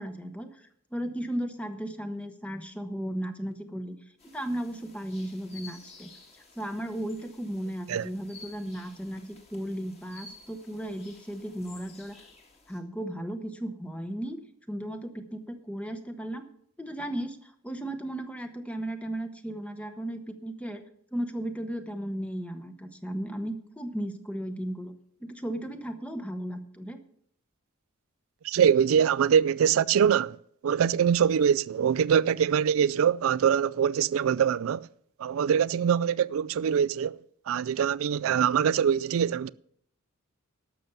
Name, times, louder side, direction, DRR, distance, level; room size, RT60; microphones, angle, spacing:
voice 1, 0.0-4.0 4.2-6.1 6.6-12.2 12.7-14.4 14.7-16.5 16.8-20.8 21.1-24.9 25.2-27.0, right 1 dB, 5° left, 0.9 m, -35 dB
sound 1, 4.2-12.8, left 3 dB, 30° left, 2.0 m, -53 dB
voice 2, 28.4-30.4 30.6-34.9 35.2-37.2 37.5-39.5, right 8 dB, 70° right, 0.3 m, -23 dB
12.0 x 6.8 x 6.9 m
head